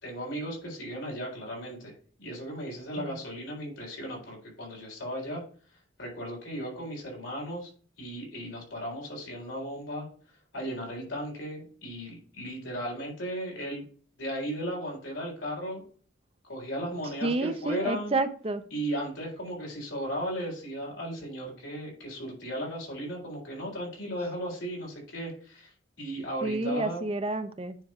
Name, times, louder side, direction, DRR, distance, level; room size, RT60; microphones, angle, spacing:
voice 1, 0.0-5.4 6.0-7.7 8.0-10.1 10.5-13.8 14.2-15.8 16.4-18.1 18.7-27.1, equal, 75° left, 4.0 m, -36 dB
voice 2, 17.2-18.6 26.4-27.8, right 2 dB, 30° right, 0.6 m, -29 dB
9.6 x 3.3 x 5.3 m
head